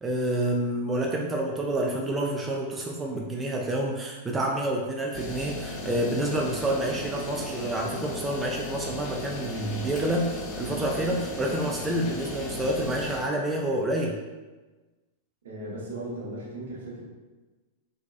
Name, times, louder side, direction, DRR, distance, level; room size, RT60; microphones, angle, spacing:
voice 1, 0.0-14.2, right 1 dB, 15° right, -1 dB, 0.3 m, -28 dB
sound 1, 5.1-13.2, left 1 dB, 30° left, 0.7 m, -36 dB
voice 2, 15.4-17.0, right 1 dB, 75° right, -5 dB, 0.9 m, -37 dB
2.6 x 2.2 x 2.3 m, 1.2 s
hypercardioid pair, 105°, 0 cm